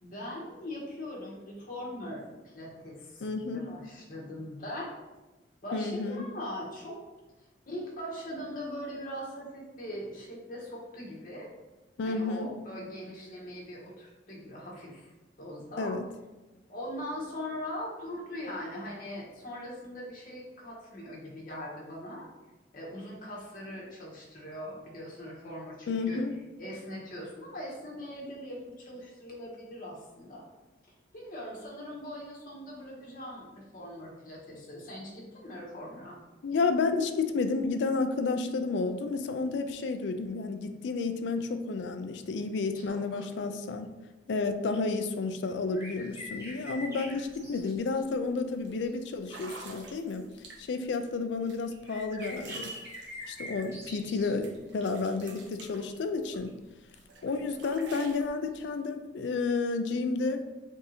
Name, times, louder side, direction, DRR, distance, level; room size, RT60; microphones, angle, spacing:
voice 1, 0.0-3.3 3.5-4.9 5.6-7.0 7.7-11.5 12.0-15.9 16.7-22.3 22.7-26.2 26.6-30.5 31.1-36.2 42.7-43.3, left 1 dB, 50° left, -4 dB, 1.1 m, -41 dB
voice 2, 3.2-3.7 5.7-6.3 12.0-12.5 15.8-16.0 25.9-26.3 36.4-43.9 44.3-50.3 50.6-52.7 53.3-56.5 57.2-60.4, left 4 dB, 75° left, 8 dB, 0.4 m, -31 dB
sound 1, 45.7-48.0 48.9-49.0 49.9-50.0 51.8-54.3 55.8-56.0 58.6-58.7, equal, 15° right, 1.3 m, -43 dB
sound 2, 47.2-47.4 47.7-48.0 48.6-48.7 49.2-50.9 51.5-54.2 54.4-56.5 56.9-58.3, right 3 dB, 75° right, 0.6 m, -49 dB
3.5 x 2.7 x 4.1 m, 1.1 s
head